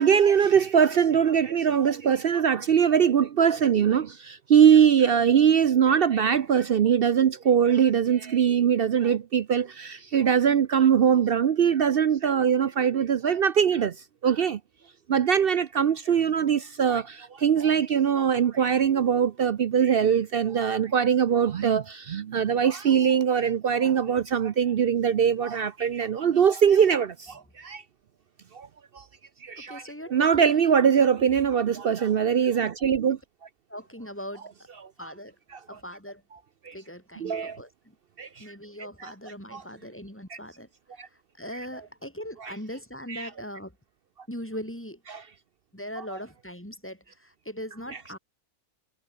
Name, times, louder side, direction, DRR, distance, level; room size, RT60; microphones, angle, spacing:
voice 1, 0.0-13.9 14.2-14.6 15.1-27.8 28.5-28.7 29.0-29.1 29.4-29.8 30.1-33.2 36.7-36.8 37.2-37.6 38.2-38.4 39.0-39.1 39.5-39.6 40.3-40.4 41.0-41.1 42.4-42.5 43.1-43.3 45.1-45.2, right 8 dB, 60° right, 0.6 m, -22 dB
voice 2, 29.6-30.1 30.4-30.7 33.1-33.2 33.7-34.5 35.0-35.4 35.7-36.2 36.7-38.0 38.4-40.7 40.9-41.1 41.3-43.7 44.3-45.0 45.7-48.2, equal, 10° left, 5.3 m, -40 dB
omnidirectional pair, 1.6 m